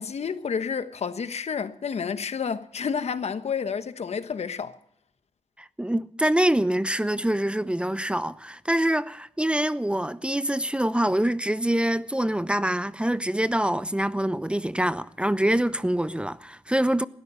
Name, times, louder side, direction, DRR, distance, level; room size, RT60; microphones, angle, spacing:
voice 1, 0.0-4.8, left 6 dB, 65° left, 1.1 m, -30 dB
voice 2, 5.6-17.1, right 1 dB, 10° right, 0.7 m, -25 dB
19.5 x 13.5 x 5.5 m
cardioid pair, 60°, 12 cm